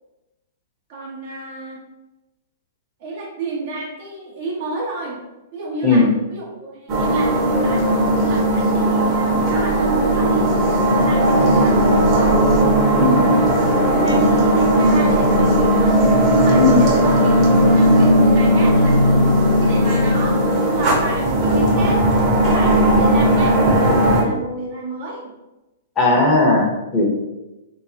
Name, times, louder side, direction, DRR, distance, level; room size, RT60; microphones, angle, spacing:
voice 1, 0.9-1.8 3.0-5.2 5.5-12.4 12.9-22.0 22.5-25.3, right 2 dB, 50° right, -3 dB, 1.0 m, -31 dB
sound 1, 6.9-24.2, right 1 dB, 30° right, 1.1 m, -16 dB
voice 2, 12.9-13.3 16.5-16.9 26.0-27.1, left 3 dB, 20° left, -2 dB, 1.0 m, -16 dB
3.3 x 3.1 x 2.8 m, 1.0 s
hypercardioid pair, 120°, 0 cm